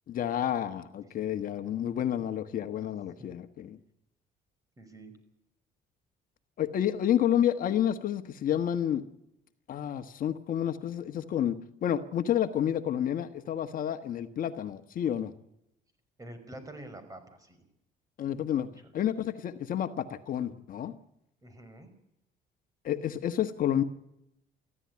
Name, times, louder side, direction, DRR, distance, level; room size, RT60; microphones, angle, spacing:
voice 1, 0.1-3.8 6.6-9.0 9.7-11.5 11.8-15.3 18.2-18.7 18.9-20.9 22.8-23.8, left 10 dB, 55° left, 8 dB, 1.4 m, -30 dB
voice 2, 4.8-5.1 16.2-17.6 18.6-18.7 21.4-21.9, right 1 dB, 20° right, 10 dB, 5.5 m, -47 dB
22.5 x 15.0 x 9.7 m, 0.83 s
cardioid pair, 110°, 17 cm